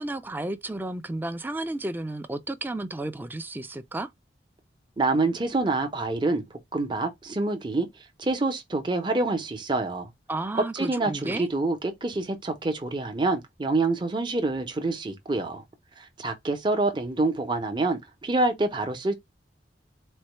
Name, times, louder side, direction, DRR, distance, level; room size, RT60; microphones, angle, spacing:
voice 1, 0.0-4.1 10.3-11.5, right 2 dB, 10° right, 0.4 m, -32 dB
voice 2, 5.0-6.4 6.7-7.9 8.2-10.1 10.5-15.6 16.0-19.1, right 2 dB, 25° right, 0.8 m, -26 dB
4.3 x 2.2 x 3.1 m
head